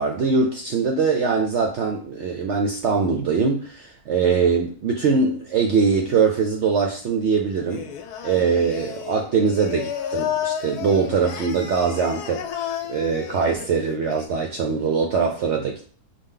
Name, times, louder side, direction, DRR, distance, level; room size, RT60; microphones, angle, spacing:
voice 1, 0.0-7.9 8.2-15.9, right 5 dB, 70° right, 2 dB, 0.6 m, -22 dB
Singing, 7.7-14.3, left 9 dB, 80° left, 1.1 m, -32 dB
5.1 x 2.2 x 3.7 m, 0.42 s
omnidirectional pair, 1.7 m